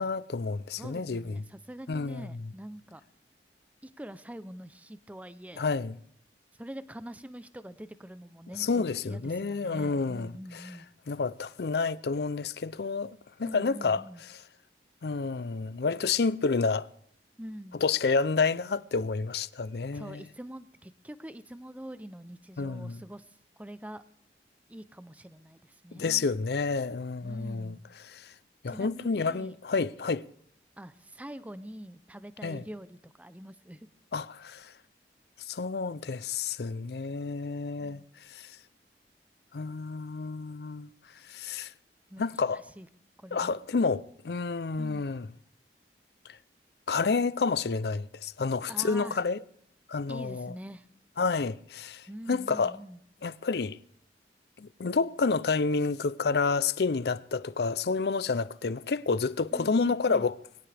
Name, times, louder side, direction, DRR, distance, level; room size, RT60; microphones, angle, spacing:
voice 1, 0.0-1.4 1.9-2.4 5.6-6.0 8.6-10.6 11.1-14.0 15.0-16.9 17.8-20.2 22.6-23.0 25.9-27.8 28.1-28.3 28.6-30.2 32.4-32.6 34.1-34.7 35.5-38.0 38.3-38.5 39.5-40.9 41.3-41.7 42.2-42.6 43.3-45.3 46.9-49.4 49.9-50.5 51.2-52.7 53.2-53.8 54.6-60.4, left 4 dB, 65° left, 0.5 m, -29 dB
voice 2, 0.8-3.0 3.8-5.7 6.6-10.9 13.4-14.2 17.4-17.8 19.8-24.0 24.7-26.2 27.2-27.9 28.7-29.6 30.8-33.9 42.1-42.2 42.5-42.9 43.2-43.6 44.8-45.1 48.7-49.2 50.1-50.9 52.1-53.0 59.5-60.3, right 1 dB, 10° right, 0.5 m, -44 dB
22.5 x 18.0 x 3.4 m
head